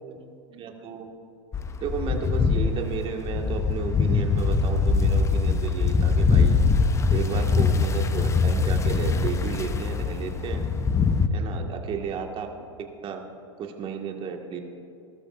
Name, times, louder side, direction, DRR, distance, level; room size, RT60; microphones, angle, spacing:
voice 1, 0.5-1.1 1.8-6.6 7.1-10.6 11.3-12.5 13.0-13.2 13.6-14.6, right 6 dB, 35° right, 3 dB, 1.6 m, -33 dB
sound 1, 1.5-11.3, left 4 dB, 20° left, 0.7 m, -23 dB
19.0 x 12.5 x 2.5 m, 2.6 s
hypercardioid pair, 100°, 16 cm